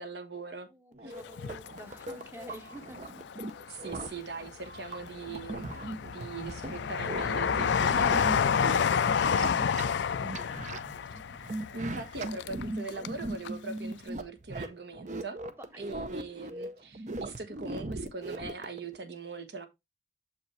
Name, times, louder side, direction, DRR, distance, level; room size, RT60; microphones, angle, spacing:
voice 1, 0.0-0.7 1.0-1.1 3.7-8.4 8.6-8.7 11.7-15.4 15.8-19.7, right 3 dB, 60° right, 1.2 m, -41 dB
voice 2, 0.6-3.1 8.4-11.1 15.4-15.9, right 1 dB, 15° right, 0.9 m, -50 dB
sound 1, 0.9-19.0, right 2 dB, 40° right, 0.6 m, -39 dB
Train, 1.2-2.5 2.9-3.9 4.4-13.2 13.4-13.5, left 7 dB, 70° left, 0.4 m, -29 dB
7.0 x 5.0 x 3.2 m
head